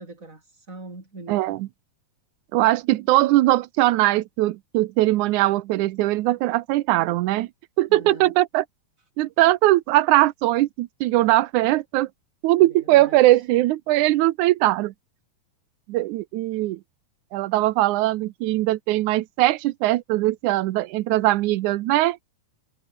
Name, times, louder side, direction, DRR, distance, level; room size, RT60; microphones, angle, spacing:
voice 1, 0.0-1.6 7.9-8.3 12.6-13.2, right 2 dB, 25° right, 5.8 m, -41 dB
voice 2, 1.3-1.7 2.5-7.5 7.8-8.6 9.2-12.1 12.4-14.9 15.9-16.8 17.3-22.2, right 16 dB, 80° right, 2.1 m, -20 dB
omnidirectional pair, 3.6 m